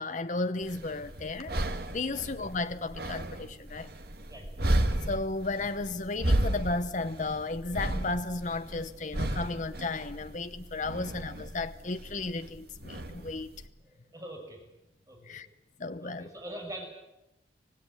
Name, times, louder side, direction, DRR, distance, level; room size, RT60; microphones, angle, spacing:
voice 1, 0.0-1.6 1.9-3.9 5.1-13.5 15.2-15.5 15.8-16.3, left 3 dB, 40° left, 0.9 m, -34 dB
sound 1, 0.6-13.7, right 1 dB, 55° right, 1.7 m, -33 dB
voice 2, 13.8-14.6 15.1-15.4 16.0-16.9, right 1 dB, 20° right, 6.6 m, -44 dB
25.5 x 17.5 x 9.8 m
head